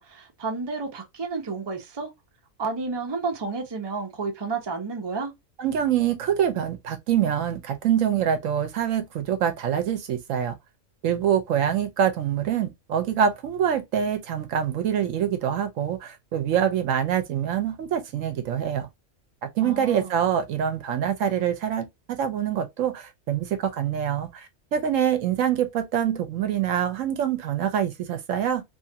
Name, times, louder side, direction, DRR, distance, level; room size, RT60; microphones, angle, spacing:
voice 1, 0.0-2.1 2.6-5.3 19.6-20.1, right 4 dB, 25° right, 0.6 m, -31 dB
voice 2, 5.6-10.5 11.0-18.9 19.4-28.6, right 9 dB, 75° right, 0.9 m, -25 dB
2.8 x 2.4 x 2.7 m
omnidirectional pair, 1.4 m